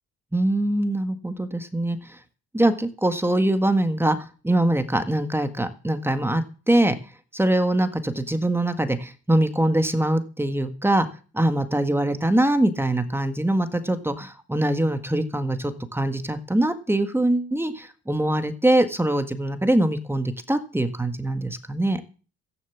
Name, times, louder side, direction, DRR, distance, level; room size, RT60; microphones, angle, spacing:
voice 1, 0.3-2.0 2.5-4.2 4.4-6.9 7.3-11.1 11.3-22.0, right 1 dB, 10° right, 9 dB, 1.7 m, -23 dB
14.0 x 10.5 x 7.2 m, 0.37 s
cardioid pair, 90°, 30 cm